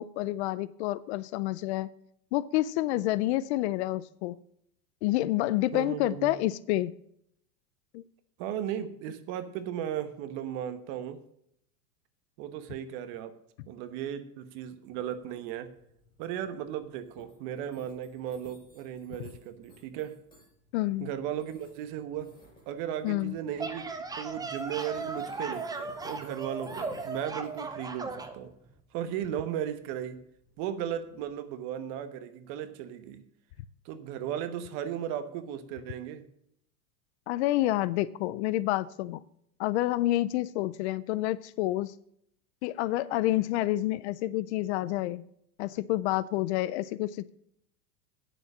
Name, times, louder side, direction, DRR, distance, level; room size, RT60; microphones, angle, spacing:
voice 1, 0.0-1.9 2.3-4.4 5.0-6.9 7.9-8.0 20.7-21.1 23.0-23.3 37.3-39.2 39.6-41.9 42.6-45.2 45.6-47.3, left 16 dB, 45° left, 0.4 m, -28 dB
voice 2, 5.7-6.4 8.4-11.2 12.4-13.4 13.7-15.7 16.2-20.2 21.0-22.3 22.7-28.5 28.9-30.2 30.6-33.2 33.8-36.3, right 10 dB, 45° right, 1.2 m, -36 dB
sound 1, 14.9-31.3, equal, 10° left, 5.5 m, -57 dB
sound 2, 23.4-28.4, right 3 dB, 10° right, 0.7 m, -37 dB
9.5 x 6.8 x 7.2 m
supercardioid pair, 135°, 48 cm